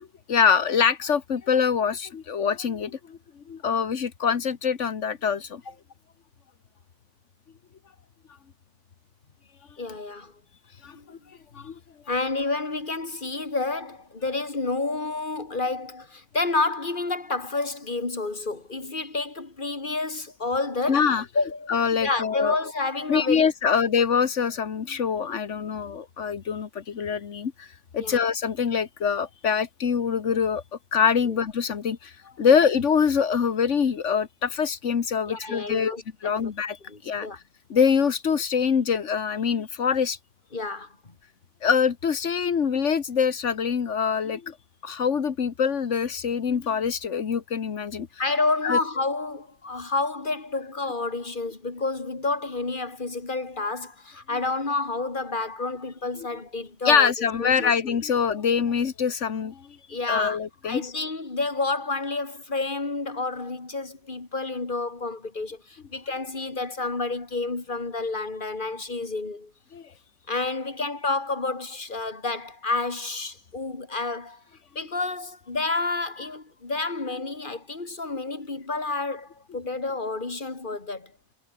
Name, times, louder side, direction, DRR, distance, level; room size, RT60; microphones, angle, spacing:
voice 1, 0.3-3.2 3.5-5.6 10.8-11.2 11.5-11.7 20.9-21.2 21.7-22.6 23.1-27.7 27.9-30.6 30.9-35.9 36.2-36.8 37.0-37.4 37.7-40.2 41.6-44.6 44.8-48.1 48.6-48.8 56.8-59.7 60.1-60.9 69.7-69.8, left 6 dB, 85° left, 1.7 m, -24 dB
voice 2, 9.8-10.3 10.9-11.1 12.1-21.1 21.3-21.7 22.0-23.8 28.0-28.2 35.3-36.3 36.9-37.4 40.5-41.1 48.2-57.1 57.4-58.0 59.9-69.5 70.3-74.4 74.7-81.1, left 3 dB, 45° left, 2.9 m, -29 dB
omnidirectional pair, 1.2 m